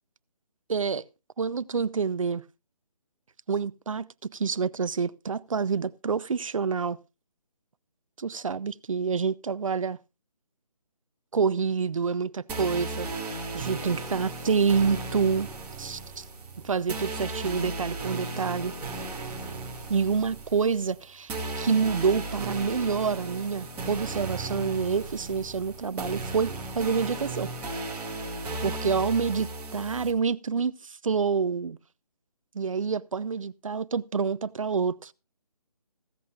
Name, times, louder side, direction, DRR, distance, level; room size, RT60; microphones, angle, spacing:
voice 1, 0.7-1.0 1.4-2.4 3.5-4.1 4.3-7.0 8.2-10.0 11.3-13.1 13.5-15.5 15.8-16.2 16.6-18.7 19.9-27.5 28.6-31.8 32.5-35.1, right 5 dB, 55° right, 0.7 m, -27 dB
sound 1, 12.5-30.1, right 2 dB, 10° right, 2.5 m, -36 dB
15.5 x 14.5 x 2.5 m
figure-of-eight pair, 165°, 20 cm